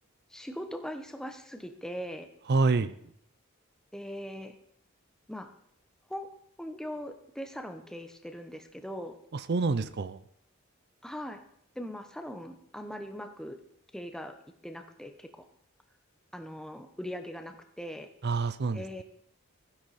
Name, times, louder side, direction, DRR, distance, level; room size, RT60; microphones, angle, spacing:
voice 1, 0.3-2.3 3.9-4.5 5.3-5.5 6.1-6.3 6.6-9.2 11.0-11.4 11.7-13.6 13.9-14.4 14.6-15.4 16.3-18.1 18.7-19.0, equal, 5° left, 6 dB, 0.9 m, -40 dB
voice 2, 2.5-2.9 9.3-10.2 18.2-19.0, right 3 dB, 50° right, 14 dB, 0.5 m, -27 dB
15.0 x 10.5 x 4.2 m, 0.69 s
head